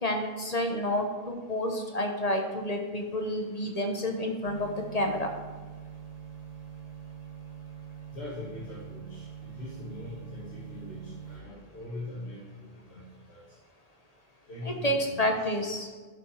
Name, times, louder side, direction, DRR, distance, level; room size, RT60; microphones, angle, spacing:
voice 1, 0.0-5.3 14.7-15.9, left 1 dB, 40° left, 3 dB, 1.1 m, -29 dB
sound 1, 4.4-11.5, right 8 dB, 35° right, 1.2 m, -44 dB
voice 2, 8.1-13.4 14.5-15.5, left 1 dB, 75° left, -8 dB, 2.3 m, -42 dB
12.0 x 5.9 x 4.9 m, 1.4 s
omnidirectional pair, 1.1 m